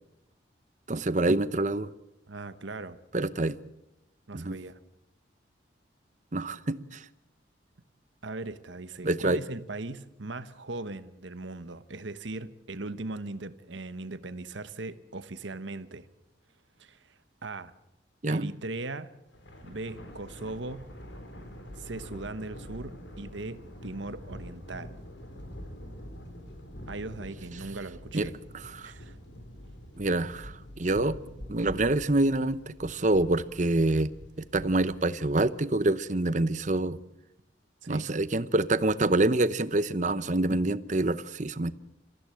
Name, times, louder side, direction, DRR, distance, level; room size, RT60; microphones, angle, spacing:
voice 1, 0.9-1.9 3.1-3.6 4.3-4.6 6.3-7.0 9.0-9.4 18.2-18.5 28.1-28.3 28.6-28.9 30.0-31.2 31.5-34.1 34.5-37.0 37.9-41.7, right 2 dB, 40° right, 0.8 m, -26 dB
voice 2, 2.3-3.0 4.3-4.8 8.2-16.1 16.8-17.1 17.4-17.7 18.3-19.1 19.6-20.9 21.7-25.0 26.9-28.3 28.8-29.1 37.8-38.1, right 2 dB, 75° right, 1.2 m, -39 dB
Thunder, 19.3-35.9, equal, 70° left, 4.0 m, -45 dB
27.0 x 15.0 x 7.7 m
head